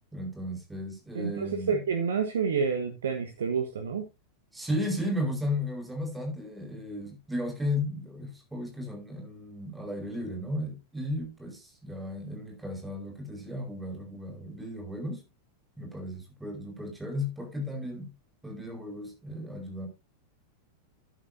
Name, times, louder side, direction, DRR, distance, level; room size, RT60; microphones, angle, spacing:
voice 1, 0.1-1.8 4.5-15.2 15.8-18.1 18.4-19.9, left 1 dB, 5° right, 3 dB, 4.7 m, -34 dB
voice 2, 1.2-4.0, right 6 dB, 65° right, 6 dB, 1.2 m, -29 dB
11.5 x 11.0 x 2.7 m, 0.24 s
figure-of-eight pair, 90°, 0 cm